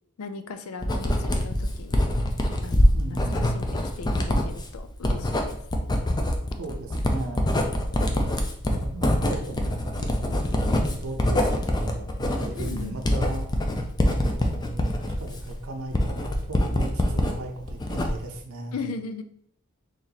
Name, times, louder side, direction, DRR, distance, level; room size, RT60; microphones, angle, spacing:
voice 1, 0.2-2.0 2.6-5.6 12.6-13.0 18.7-19.2, left 4 dB, 80° left, 9 dB, 0.4 m, -38 dB
Writing, 0.8-17.3 17.7-18.4, left 1 dB, 20° left, 0.4 m, -24 dB
voice 2, 2.9-3.4 6.6-8.1 8.7-9.8 10.2-10.5 10.8-13.5 14.0-18.8, right 2 dB, 70° right, 1 dB, 0.6 m, -37 dB
3.0 x 2.8 x 3.9 m, 0.67 s
head